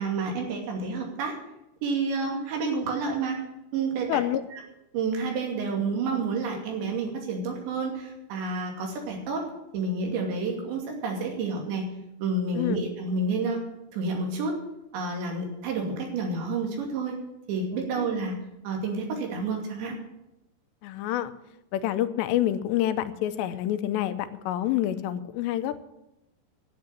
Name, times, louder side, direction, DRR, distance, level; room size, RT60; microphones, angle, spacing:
voice 1, 0.0-1.3 1.8-3.4 3.7-4.2 4.9-9.4 9.7-11.9 12.2-13.6 13.9-14.5 14.9-17.2 17.5-18.3 18.6-20.0, right 3 dB, 90° right, 1 dB, 4.8 m, -29 dB
voice 2, 4.1-4.4 12.5-12.8 18.0-18.1 20.8-21.3 21.7-25.8, left 12 dB, 85° left, 11 dB, 2.9 m, -27 dB
10.5 x 8.6 x 9.9 m, 0.88 s
omnidirectional pair, 5.0 m